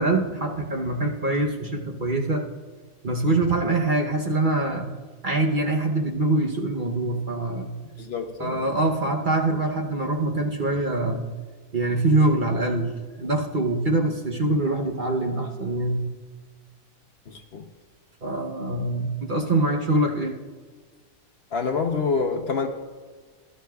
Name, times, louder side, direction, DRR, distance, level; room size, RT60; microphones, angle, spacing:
voice 1, 0.0-2.5 3.0-4.9 5.2-7.7 8.4-11.2 11.7-12.9 13.2-16.0 18.2-20.4, right 2 dB, 40° right, 1 dB, 0.9 m, -24 dB
voice 2, 8.0-8.6 17.3-17.6 21.5-22.7, left 5 dB, 55° left, 5 dB, 0.9 m, -27 dB
18.0 x 11.5 x 2.3 m, 1.5 s
omnidirectional pair, 1.5 m